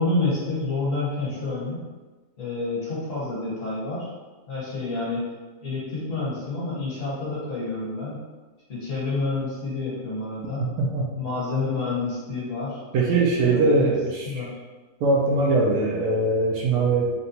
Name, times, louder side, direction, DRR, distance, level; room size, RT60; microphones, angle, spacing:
voice 1, 0.0-1.8 2.4-4.1 4.5-5.2 5.6-8.2 8.7-10.7 11.2-12.8 13.4-13.9 14.3-14.5, left 3 dB, 55° left, -8 dB, 1.5 m, -28 dB
voice 2, 12.9-14.4 15.0-17.1, right 3 dB, 75° right, -2 dB, 1.1 m, -21 dB
3.9 x 2.2 x 2.8 m, 1.3 s
omnidirectional pair, 1.8 m